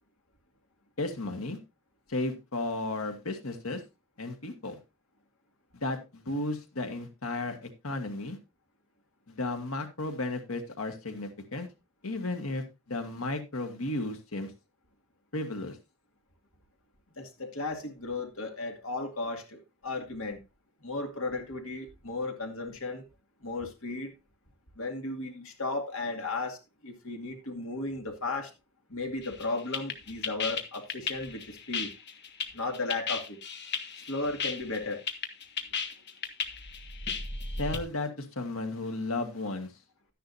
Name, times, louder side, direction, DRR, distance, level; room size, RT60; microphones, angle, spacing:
voice 1, 1.0-1.6 2.1-3.8 4.2-4.8 5.7-8.4 9.3-11.7 12.0-14.5 15.3-15.8 37.6-39.7, left 2 dB, 90° left, 1.7 m, -34 dB
voice 2, 17.2-20.4 20.8-23.0 23.4-24.1 24.8-28.5 28.9-31.9 32.5-33.4 34.0-35.0 35.7-36.0, left 3 dB, 75° left, 2.3 m, -35 dB
sound 1, 29.2-37.8, left 5 dB, 55° left, 1.3 m, -35 dB
12.5 x 10.0 x 2.7 m
head